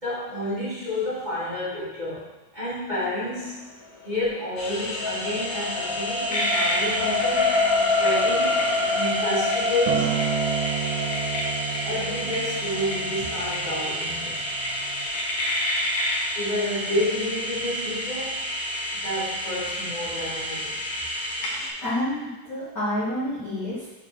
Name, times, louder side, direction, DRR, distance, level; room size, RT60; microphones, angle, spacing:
voice 1, 0.0-3.6 4.0-8.6 8.9-10.1 11.8-14.4 16.3-18.5 19.0-20.8, left 1 dB, 15° right, -12 dB, 1.7 m, -30 dB
sound 1, 4.2-16.7 17.2-17.4, left 3 dB, 30° left, 2.3 m, -28 dB
sound 2, 4.6-21.7, equal, 65° left, 2.4 m, -30 dB
Acoustic guitar, 9.9-14.2 15.0-15.1, right 9 dB, 80° right, 2.7 m, -30 dB
voice 2, 21.8-23.9, left 1 dB, 90° left, -11 dB, 0.9 m, -29 dB
6.8 x 4.3 x 6.0 m, 1.1 s
omnidirectional pair, 4.7 m